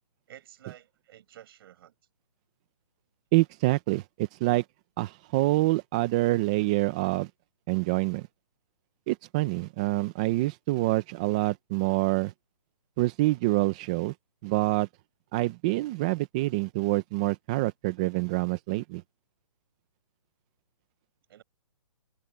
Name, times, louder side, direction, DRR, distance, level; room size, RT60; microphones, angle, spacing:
voice 1, 0.3-1.9 21.3-21.4, right 11 dB, 40° right, 6.6 m, -51 dB
voice 2, 3.3-4.6 5.0-7.3 7.7-8.3 9.1-12.3 13.0-14.1 14.4-14.9 15.3-19.0, right 19 dB, 10° right, 0.4 m, -26 dB
hypercardioid pair, 160°, 19 cm